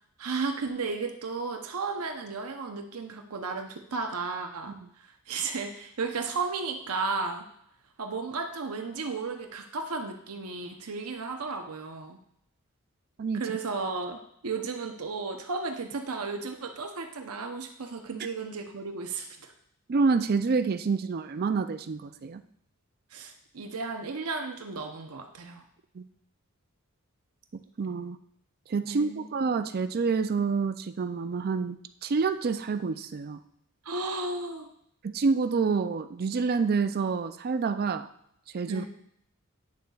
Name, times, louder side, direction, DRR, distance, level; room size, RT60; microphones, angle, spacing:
voice 1, 0.2-7.5 8.0-12.2 13.3-19.5 23.1-25.6 28.9-29.3 33.8-34.7 38.7-38.9, right 4 dB, 85° right, 4 dB, 0.8 m, -34 dB
voice 2, 19.9-22.4 26.0-26.1 27.8-28.2 28.7-33.4 35.0-38.1 38.5-38.9, right 4 dB, 45° right, 11 dB, 0.4 m, -28 dB
9.6 x 6.5 x 2.4 m, 0.72 s
head